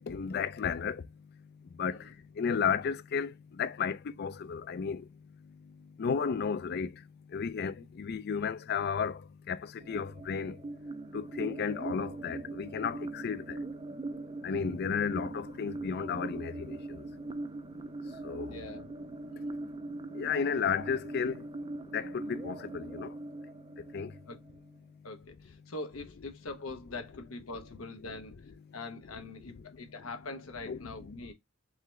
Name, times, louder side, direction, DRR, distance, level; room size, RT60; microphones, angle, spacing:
voice 1, 0.1-1.0 1.8-2.0 2.4-5.0 6.0-6.9 7.3-9.2 9.5-9.6 9.9-10.6 11.1-13.6 14.4-16.8 18.2-18.5 20.1-21.4 21.9-23.1 23.9-24.1 29.4-29.5 30.7-30.8, left 6 dB, 50° left, 0.4 m, -33 dB
sound 1, 9.8-24.8, right 2 dB, 25° right, 0.3 m, -41 dB
voice 2, 18.5-18.9 19.3-19.6 24.3-24.4 25.0-31.3, left 2 dB, 90° left, 0.9 m, -43 dB
3.7 x 3.3 x 3.1 m
head